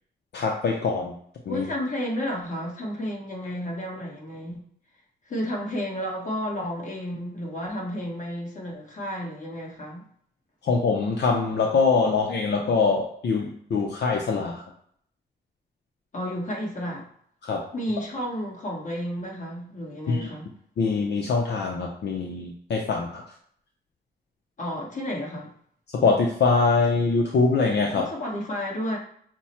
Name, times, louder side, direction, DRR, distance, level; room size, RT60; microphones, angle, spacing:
voice 1, 0.3-1.1 1.5-1.6 10.6-14.6 17.4-17.6 20.1-20.3 20.8-23.2 26.0-28.0, left 4 dB, 75° left, 0 dB, 0.6 m, -23 dB
voice 2, 1.5-4.6 5.2-10.0 16.1-17.0 17.7-20.5 24.6-25.5 27.9-29.0, equal, 45° left, -2 dB, 1.3 m, -32 dB
5.9 x 2.1 x 4.2 m, 0.65 s
wide cardioid pair, 140°, 18 cm